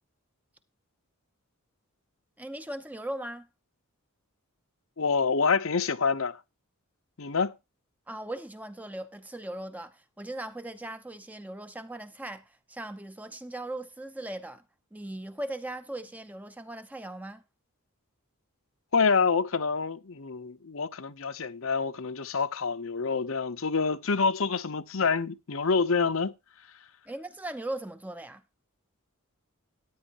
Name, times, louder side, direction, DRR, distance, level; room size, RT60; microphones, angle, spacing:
voice 1, 2.4-3.5 8.1-14.6 14.9-17.4 27.1-28.4, right 1 dB, 5° right, 0.6 m, -39 dB
voice 2, 5.0-6.4 7.2-7.5 18.9-26.3, left 5 dB, 65° left, 0.8 m, -27 dB
14.5 x 9.5 x 2.9 m
head